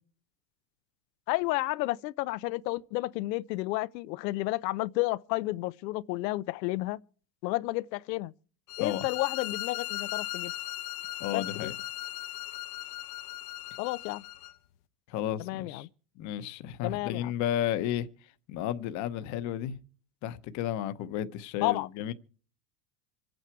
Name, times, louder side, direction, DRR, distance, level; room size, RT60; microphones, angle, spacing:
voice 1, 1.3-7.0 7.4-8.3 8.8-10.5 11.3-11.7 13.8-14.2 15.4-15.9 16.8-17.3 21.6-21.9, left 19 dB, 90° left, 0.7 m, -31 dB
sound 1, 8.7-14.5, left 15 dB, 70° left, 1.2 m, -38 dB
voice 2, 11.2-11.8 15.1-15.9 16.2-19.8 20.2-22.1, left 11 dB, 35° left, 0.9 m, -33 dB
26.5 x 9.0 x 4.6 m
supercardioid pair, 165°, 49 cm